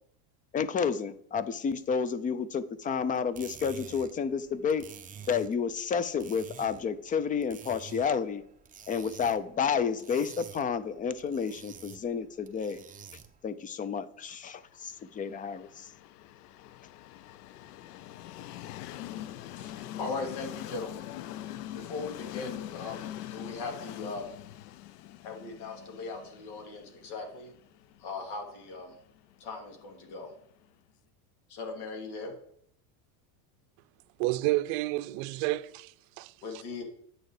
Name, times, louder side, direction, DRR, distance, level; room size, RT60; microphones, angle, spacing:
voice 1, 0.5-4.9 5.3-8.4 8.9-12.8 13.4-15.9, left 6 dB, 20° left, 0.5 m, -30 dB
sound 1, 3.1-13.5, right 7 dB, 20° right, 0.8 m, -50 dB
Train, 14.8-30.6, left 13 dB, 90° left, 0.6 m, -44 dB
voice 2, 19.4-21.1 21.7-24.3 25.2-27.5 28.0-28.9 29.4-30.3 31.5-32.3 36.4-36.8, left 3 dB, 70° left, 3.0 m, -39 dB
voice 3, 34.2-36.3, right 18 dB, 60° right, 0.6 m, -30 dB
9.1 x 6.5 x 4.9 m
supercardioid pair, 125°, 45 cm